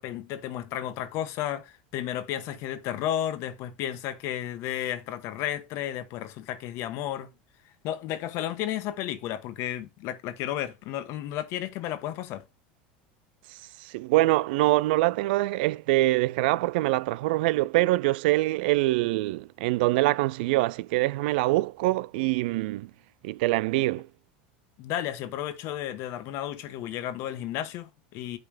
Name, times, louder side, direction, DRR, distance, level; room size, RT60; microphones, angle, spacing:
voice 1, 0.0-7.3 7.8-12.4 24.8-28.4, left 11 dB, 55° left, 1.3 m, -33 dB
voice 2, 13.8-22.9 23.2-24.0, right 19 dB, 75° right, 0.3 m, -24 dB
9.1 x 3.5 x 4.9 m
supercardioid pair, 115°, 5 cm